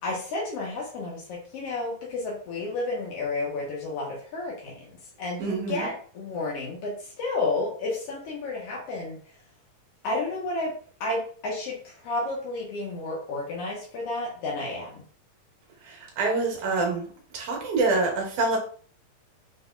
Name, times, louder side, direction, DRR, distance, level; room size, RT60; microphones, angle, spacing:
voice 1, 0.0-9.2 10.0-10.7 11.0-15.0, left 2 dB, 75° left, -3 dB, 1.4 m, -31 dB
voice 2, 5.4-5.9 15.8-17.1 17.3-18.6, right 3 dB, 65° right, -1 dB, 2.5 m, -26 dB
6.2 x 3.5 x 2.3 m, 0.43 s
omnidirectional pair, 4.2 m